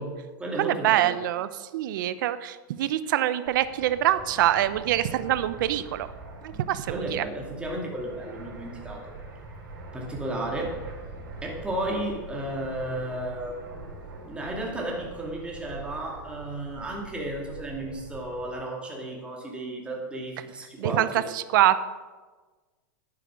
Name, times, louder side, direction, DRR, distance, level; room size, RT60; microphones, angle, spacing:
voice 1, 0.0-1.2 6.5-6.6 6.9-9.1 9.9-10.9 11.4-13.6 14.2-21.2, right 1 dB, 10° right, -1 dB, 2.4 m, -33 dB
voice 2, 0.6-6.1 6.4-7.2 20.8-21.8, right 13 dB, 70° right, 14 dB, 0.7 m, -25 dB
Fixed-wing aircraft airplane, 3.4-18.6, right 3 dB, 90° right, 3.8 m, -43 dB
10.5 x 8.4 x 6.3 m, 1.3 s
supercardioid pair, 130°, 11 cm